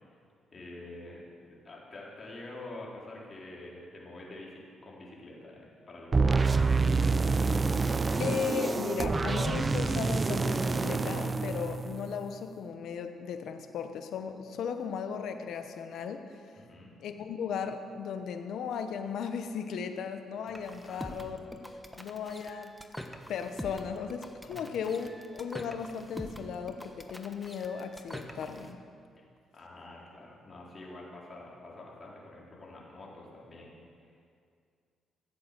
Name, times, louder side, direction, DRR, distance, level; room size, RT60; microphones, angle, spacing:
voice 1, 0.5-1.4 1.6-6.6 16.6-16.9 20.9-21.2 24.4-24.8 29.2-29.3 29.5-33.7 34.0-34.2, left 2 dB, 35° left, -4 dB, 3.9 m, -47 dB
sound 1, 6.1-12.3, right 4 dB, 30° right, 0.7 m, -27 dB
voice 2, 7.7-16.4 17.0-21.4 22.0-22.7 23.3-28.8, left 6 dB, 75° left, 7 dB, 1.0 m, -36 dB
sound 2, 20.5-28.7, equal, ahead, 1.1 m, -44 dB
15.5 x 7.9 x 7.5 m, 2.3 s
cardioid pair, 90°, 0 cm